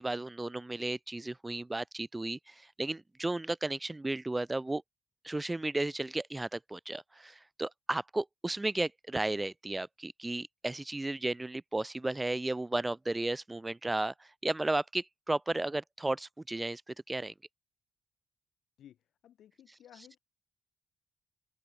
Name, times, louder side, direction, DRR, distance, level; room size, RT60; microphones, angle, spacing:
voice 1, 0.0-4.8 5.2-16.8 17.1-17.3, right 2 dB, 15° right, 0.3 m, -34 dB
voice 2, 18.8-20.2, left 10 dB, 70° left, 6.5 m, -57 dB
cardioid pair, 90°, 0 cm